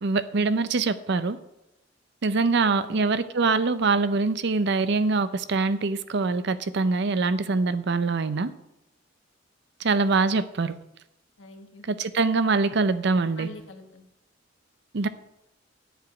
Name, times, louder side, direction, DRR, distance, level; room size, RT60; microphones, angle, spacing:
voice 1, 0.0-1.4 2.2-8.5 9.8-10.7 11.9-13.5 14.9-15.1, right 3 dB, 65° right, 0.6 m, -24 dB
voice 2, 2.4-3.0 11.4-11.9 13.4-14.0, left 2 dB, 90° left, 1.4 m, -44 dB
10.0 x 4.9 x 7.9 m
head